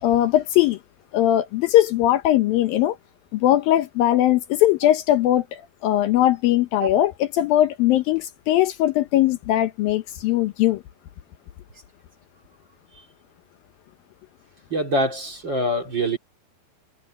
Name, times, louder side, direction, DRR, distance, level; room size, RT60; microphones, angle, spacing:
voice 1, 0.0-0.8 1.1-3.0 3.3-10.8, left 13 dB, 75° left, 2.5 m, -20 dB
voice 2, 14.7-16.2, equal, 30° right, 2.9 m, -24 dB
omnidirectional pair, 4.5 m